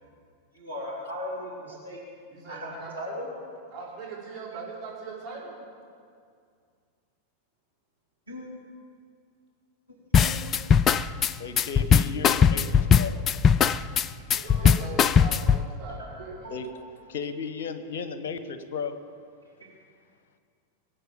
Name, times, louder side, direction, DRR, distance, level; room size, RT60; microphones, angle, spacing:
voice 1, 0.5-2.0 2.4-3.3 8.3-8.5 9.9-10.4 12.2-12.6 14.4-14.8 16.0-16.1 16.4-16.5 19.4-19.7, equal, 90° right, -6 dB, 3.4 m, -38 dB
voice 2, 2.3-2.9 3.7-5.6 14.4-16.6, right 3 dB, 30° right, -6 dB, 5.4 m, -40 dB
sound 1, 10.1-15.6, left 7 dB, 30° left, 0.4 m, -20 dB
voice 3, 11.4-13.1 16.5-16.7 17.1-19.0, left 5 dB, 60° left, 11 dB, 1.1 m, -34 dB
21.5 x 8.5 x 7.1 m, 2.2 s
figure-of-eight pair, 90°, 0 cm